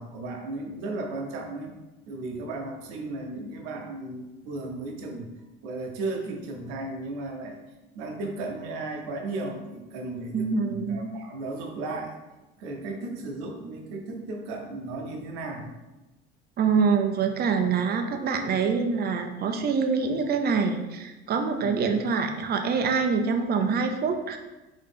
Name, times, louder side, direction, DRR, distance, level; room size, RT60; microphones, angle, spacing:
voice 1, 0.0-1.7 2.1-5.3 5.6-7.6 7.9-12.1 12.6-15.8 21.6-21.9, right 2 dB, 70° right, 2 dB, 0.9 m, -35 dB
voice 2, 10.3-11.2 16.6-24.4, right 5 dB, 35° right, 6 dB, 0.6 m, -25 dB
4.1 x 3.1 x 3.5 m, 1.1 s
hypercardioid pair, 70°, 29 cm